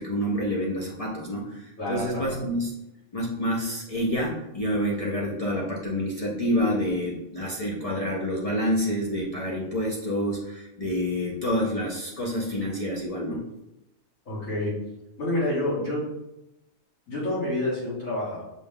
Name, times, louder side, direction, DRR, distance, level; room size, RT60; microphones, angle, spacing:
voice 1, 0.0-2.7 3.1-13.4, equal, 45° left, -3 dB, 0.4 m, -28 dB
voice 2, 1.8-2.3 14.3-14.7 15.2-16.0 17.1-18.4, left 1 dB, 75° left, -8 dB, 2.2 m, -28 dB
6.0 x 2.3 x 3.6 m, 0.90 s
omnidirectional pair, 1.4 m